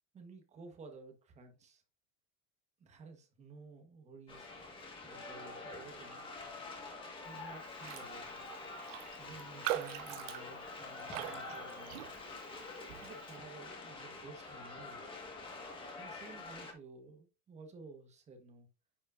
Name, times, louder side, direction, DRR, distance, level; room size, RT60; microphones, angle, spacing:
voice 1, 0.1-1.8 2.8-4.5 5.0-6.5 7.2-8.4 9.2-12.0 13.0-15.2 16.0-18.7, right 3 dB, 20° right, 1.3 m, -53 dB
sound 1, 4.3-16.7, left 3 dB, 15° left, 1.6 m, -47 dB
Raindrop, 7.8-8.1 8.4-8.5 8.9-12.5 12.9-13.2, right 14 dB, 65° right, 0.7 m, -41 dB
9.8 x 5.1 x 2.6 m
cardioid pair, 165°, 33 cm